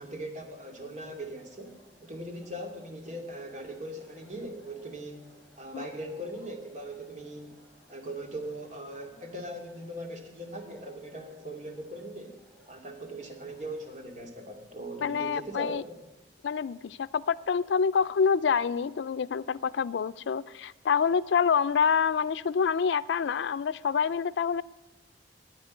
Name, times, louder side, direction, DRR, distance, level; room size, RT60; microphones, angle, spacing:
voice 1, 0.0-5.3 5.6-7.6 7.9-12.4 12.7-16.0, right 1 dB, 45° right, 2 dB, 2.3 m, -40 dB
sound 1, 0.8-14.0, right 1 dB, 5° left, 3.4 m, -61 dB
voice 2, 15.0-15.8 16.4-24.6, left 6 dB, 85° left, 17 dB, 0.4 m, -27 dB
10.5 x 9.8 x 9.4 m, 1.1 s
head